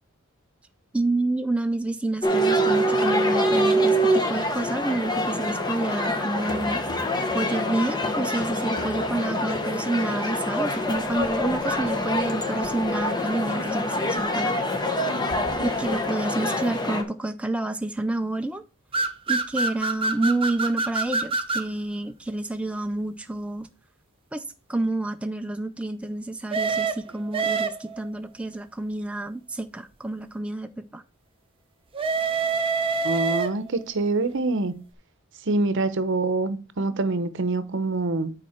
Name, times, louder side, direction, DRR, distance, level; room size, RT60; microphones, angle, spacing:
voice 1, 0.9-7.0 7.3-14.6 15.6-18.6 19.3-23.7 24.3-31.0, right 2 dB, 5° right, 0.3 m, -29 dB
sound 1, 2.2-17.0, equal, 20° left, 1.0 m, -25 dB
sound 2, 18.9-21.7 26.5-28.1 31.9-33.8, right 4 dB, 25° right, 0.7 m, -26 dB
voice 2, 33.0-34.8 35.5-38.3, right 3 dB, 60° right, 0.8 m, -25 dB
9.2 x 4.3 x 4.3 m
head